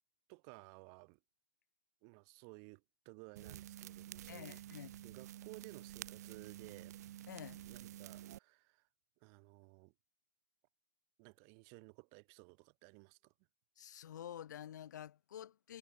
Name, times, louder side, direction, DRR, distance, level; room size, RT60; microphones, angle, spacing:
voice 1, 0.3-1.2 2.0-7.0 7.6-8.9 9.2-9.9 11.2-13.3, right 40 dB or more, 35° right, 2.3 m, -57 dB
sound 1, 3.4-8.4, right 13 dB, 60° right, 0.4 m, -50 dB
voice 2, 4.3-4.9 7.3-7.6 13.8-15.8, left 10 dB, 75° left, 1.1 m, -49 dB
hypercardioid pair, 160°, 10 cm